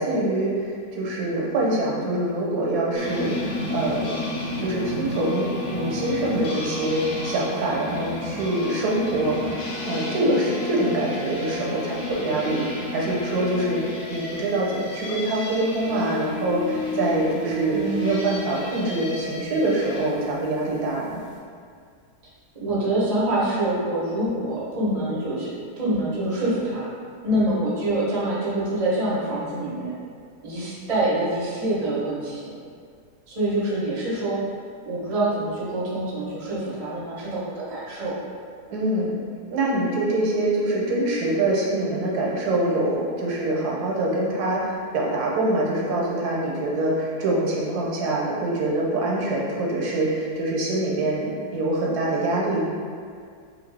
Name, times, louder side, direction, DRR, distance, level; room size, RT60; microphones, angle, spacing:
voice 1, 0.0-4.1 4.6-9.6 9.8-13.8 14.1-21.2 38.7-39.2 39.5-52.7, right 1 dB, 80° right, -4 dB, 1.2 m, -25 dB
sound 1, 3.0-20.1, left 1 dB, 60° left, 0.8 m, -31 dB
voice 2, 17.7-18.1 22.6-25.5 25.8-26.9 27.2-29.9 30.4-32.5 33.3-34.4 34.8-38.2, right 1 dB, 40° right, -7 dB, 0.5 m, -25 dB
2.9 x 2.6 x 3.2 m, 2.1 s
omnidirectional pair, 1.7 m